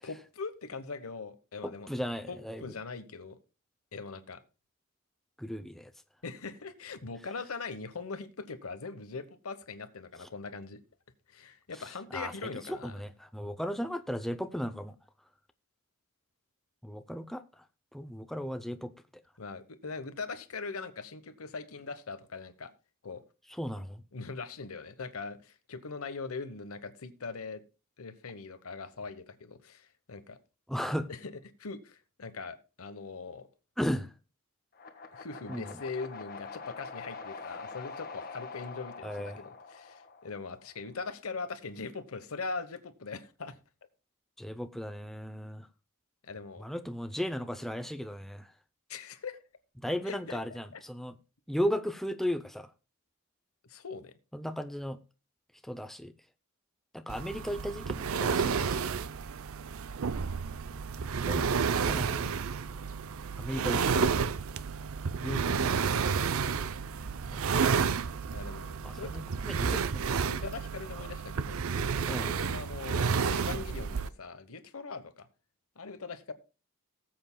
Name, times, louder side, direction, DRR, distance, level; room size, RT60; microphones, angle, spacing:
voice 1, 0.0-1.9 2.3-3.4 3.9-4.4 6.2-10.8 11.3-12.9 19.4-22.7 23.0-23.2 24.1-27.6 28.0-30.4 31.1-31.3 31.6-33.5 35.1-43.6 46.2-46.7 48.9-49.4 50.0-50.8 53.7-54.1 68.3-69.1 70.3-71.8 72.2-75.3 75.8-76.3, left 4 dB, 90° left, 1.0 m, -41 dB
voice 2, 1.6-2.6 5.4-5.9 10.2-10.3 12.1-12.3 12.7-14.9 16.8-17.6 17.9-18.9 23.6-24.0 30.7-31.1 33.8-34.1 35.5-35.8 39.0-39.4 44.4-45.7 46.6-48.5 49.8-51.2 51.5-52.7 54.3-55.0 55.6-56.1 56.9-58.8 61.3-62.2 63.4-64.1 65.2-65.7 67.3-67.9 68.8-70.1 72.1-72.3, equal, ahead, 0.5 m, -36 dB
sound 1, 34.7-40.9, left 4 dB, 40° left, 1.4 m, -45 dB
sound 2, 57.1-74.1, right 5 dB, 80° right, 0.5 m, -31 dB
19.0 x 7.8 x 2.2 m
head